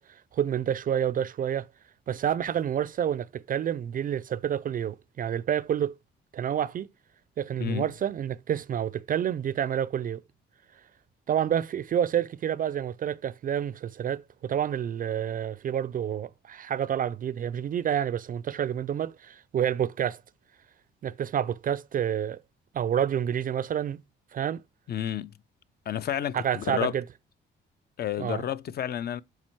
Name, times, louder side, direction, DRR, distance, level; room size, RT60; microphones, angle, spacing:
voice 1, 0.0-1.7 2.1-6.0 6.3-6.9 7.4-10.2 11.3-20.2 21.0-22.4 22.7-24.0 24.3-24.6 26.3-27.0 28.2-28.4, right 9 dB, 45° right, 0.4 m, -29 dB
voice 2, 24.9-25.3 25.9-26.9 28.0-29.2, left 10 dB, 50° left, 0.6 m, -30 dB
7.4 x 4.7 x 4.5 m
cardioid pair, 90°, 20 cm